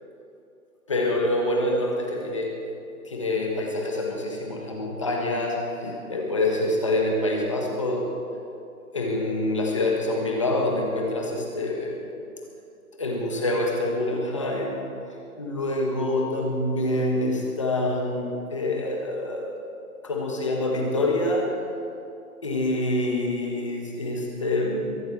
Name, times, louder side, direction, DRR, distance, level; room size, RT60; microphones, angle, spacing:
voice 1, 0.9-2.5 3.1-8.1 8.9-12.0 13.0-14.8 15.4-19.4 20.0-21.5 22.4-25.0, left 1 dB, 20° left, 0 dB, 1.5 m, -26 dB
22.5 x 8.5 x 7.1 m, 2.6 s
hypercardioid pair, 180°, 45 cm